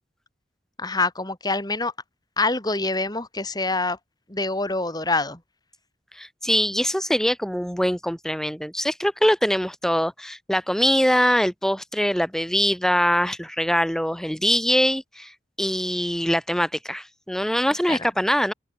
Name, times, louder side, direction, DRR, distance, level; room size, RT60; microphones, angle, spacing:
voice 1, 0.8-1.9 2.4-4.0 4.3-5.4 17.9-18.1, left 3 dB, 25° left, 4.0 m, -25 dB
voice 2, 6.1-15.3 15.6-18.5, equal, 5° left, 3.8 m, -23 dB
open air
head